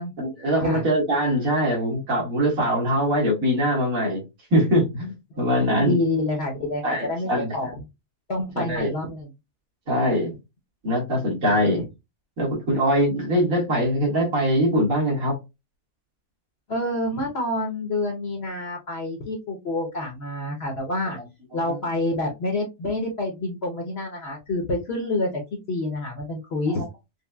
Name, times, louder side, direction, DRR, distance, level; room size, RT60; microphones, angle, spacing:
voice 1, 0.2-4.2 4.5-6.0 6.8-7.5 8.6-8.9 9.9-10.3 10.8-11.8 12.4-15.4 21.6-21.8 26.7-26.8, equal, 65° right, 2.1 m, -22 dB
voice 2, 5.6-7.8 8.3-9.3 11.7-11.8 16.7-21.2 21.5-25.4 25.7-26.8, left 2 dB, 50° left, 0.9 m, -27 dB
5.3 x 2.1 x 2.2 m
omnidirectional pair, 1.6 m